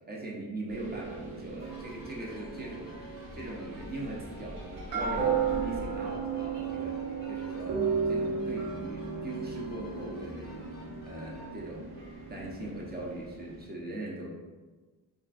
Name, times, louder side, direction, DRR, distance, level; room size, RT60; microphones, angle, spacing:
voice 1, 0.1-7.0 7.3-7.8 8.1-10.7 11.1-11.9 12.3-14.3, right 2 dB, 25° right, -3 dB, 0.4 m, -40 dB
sound 1, 0.7-13.6, right 5 dB, 75° right, 1.0 m, -35 dB
sound 2, 1.6-11.6, left 1 dB, 20° left, 0.6 m, -51 dB
2.4 x 2.4 x 2.3 m, 1.3 s
cardioid pair, 100°, 44 cm